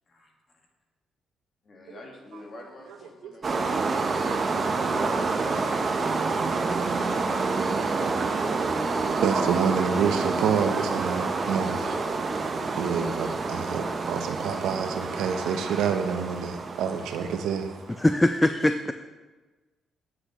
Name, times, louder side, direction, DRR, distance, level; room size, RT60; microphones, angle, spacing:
voice 1, 0.1-0.6 1.6-3.9 4.8-9.3 11.8-12.7 15.4-15.7 18.2-18.6, left 2 dB, 45° left, 1 dB, 1.6 m, -47 dB
voice 2, 3.2-3.7 8.5-8.7 9.0-11.8 12.7-17.7, right 7 dB, 85° right, 7 dB, 0.7 m, -28 dB
sound 1, 3.4-17.9, right 4 dB, 40° right, 0.7 m, -28 dB
voice 3, 18.0-18.9, left 1 dB, 10° left, 9 dB, 0.3 m, -22 dB
8.3 x 7.7 x 3.0 m, 1.3 s
cardioid pair, 90°, 0 cm